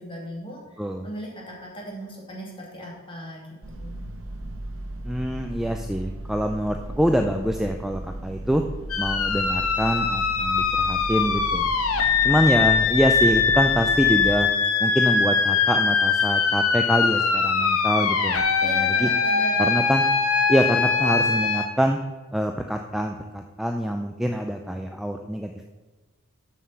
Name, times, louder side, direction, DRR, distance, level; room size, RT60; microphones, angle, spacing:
voice 1, 0.0-0.6 1.0-3.4 3.8-4.1 18.6-19.7, equal, 25° left, -2 dB, 2.4 m, -37 dB
sound 1, 3.6-14.4, right 1 dB, 65° right, 1.2 m, -36 dB
voice 2, 5.1-8.6 9.0-11.7 12.2-14.5 14.8-19.1 19.6-20.1 20.5-22.0 22.3-25.7, equal, ahead, 4 dB, 0.4 m, -25 dB
sound 2, 8.9-21.7, left 5 dB, 80° left, 1.0 m, -22 dB
7.2 x 6.6 x 6.9 m, 1.3 s
head